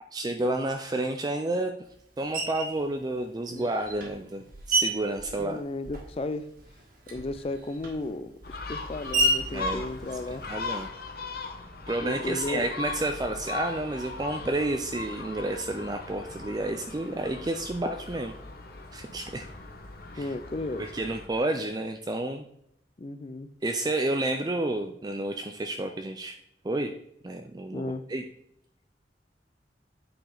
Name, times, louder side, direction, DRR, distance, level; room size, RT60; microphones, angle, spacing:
voice 1, 0.1-1.7 2.2-5.6 9.5-9.8 10.5-10.9 11.9-18.3 18.9-19.5 20.1-20.3 20.8-22.5 23.6-26.4 26.6-26.9 27.2-27.8 28.1-28.3, right 2 dB, 25° right, 5 dB, 0.4 m, -30 dB
Screech, 2.3-2.8 3.6-6.3 6.5-10.8, right 1 dB, 55° right, 1.7 m, -31 dB
voice 2, 5.3-6.5 7.1-10.4 12.0-12.7 20.2-20.8 23.0-23.5 27.7-28.0, left 2 dB, 35° left, 10 dB, 0.4 m, -34 dB
Gull seagull, 8.4-21.3, left 3 dB, 55° left, 1.0 m, -39 dB
8.8 x 5.0 x 3.9 m, 0.73 s
head